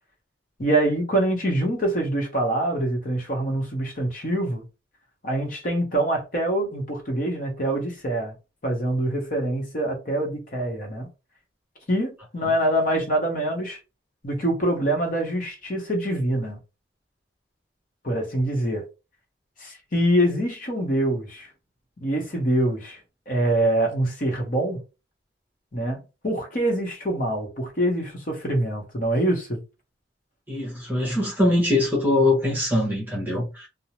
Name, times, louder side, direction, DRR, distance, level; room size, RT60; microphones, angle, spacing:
voice 1, 0.6-4.6 5.2-8.3 8.6-11.1 11.9-13.8 14.2-16.6 18.0-18.8 19.6-21.5 22.0-23.0 23.3-24.8 25.7-29.6, right 1 dB, 45° left, 0.9 m, -25 dB
voice 2, 30.5-33.7, left 1 dB, 10° right, 0.9 m, -22 dB
2.6 x 2.0 x 3.0 m
head